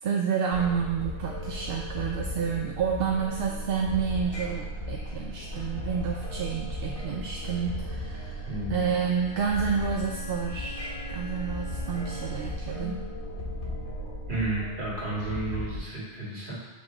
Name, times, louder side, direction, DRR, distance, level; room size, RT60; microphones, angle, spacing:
voice 1, 0.0-13.0, right 6 dB, 65° right, 0 dB, 0.7 m, -30 dB
sound 1, 0.5-15.8, equal, 55° left, 1.2 m, -37 dB
sound 2, 1.1-15.6, left 1 dB, 75° left, 1.4 m, -43 dB
voice 2, 8.4-8.9 12.8-12.9 14.3-16.5, right 2 dB, 45° right, -7 dB, 2.2 m, -32 dB
Bowed string instrument, 9.0-12.8, left 1 dB, 20° left, 1.6 m, -44 dB
6.0 x 5.3 x 3.8 m, 1.1 s
omnidirectional pair, 1.2 m